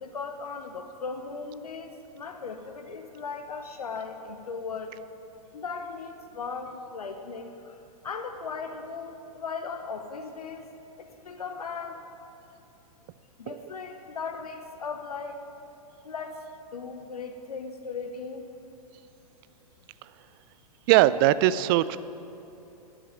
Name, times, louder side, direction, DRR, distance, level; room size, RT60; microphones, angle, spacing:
voice 1, 0.0-5.0 5.5-7.8 8.0-10.6 11.2-12.0 13.4-15.4 16.0-16.4 16.7-18.5, left 5 dB, 80° left, 5 dB, 0.9 m, -37 dB
voice 2, 20.9-22.0, right 15 dB, 35° right, 16 dB, 0.4 m, -20 dB
10.0 x 7.9 x 9.2 m, 2.8 s
figure-of-eight pair, 105°, 19 cm